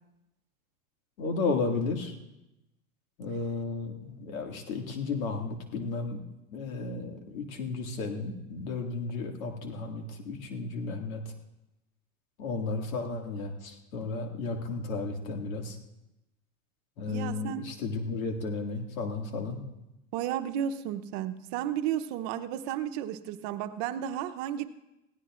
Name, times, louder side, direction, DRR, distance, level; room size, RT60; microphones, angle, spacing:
voice 1, 1.2-2.1 3.2-6.2 6.5-11.2 12.4-15.8 17.0-19.6, left 3 dB, 85° left, 2 dB, 2.2 m, -33 dB
voice 2, 17.1-17.6 20.1-24.7, right 10 dB, 55° right, 9 dB, 0.9 m, -33 dB
21.0 x 16.0 x 2.5 m, 0.94 s
supercardioid pair, 125°, 40 cm